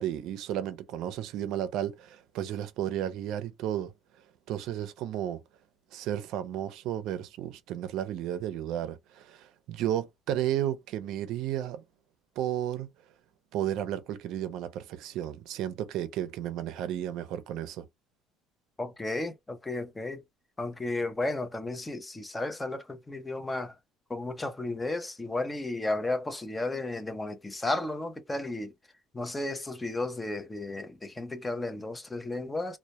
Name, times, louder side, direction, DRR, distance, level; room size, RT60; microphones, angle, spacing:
voice 1, 0.0-3.9 4.5-5.4 5.9-11.8 12.4-12.9 13.5-17.8, right 11 dB, 65° right, 0.5 m, -33 dB
voice 2, 18.8-20.2 20.6-23.7 24.1-28.7 29.1-32.8, left 2 dB, 10° left, 0.5 m, -33 dB
2.1 x 2.1 x 2.8 m
cardioid pair, 135°, 0 cm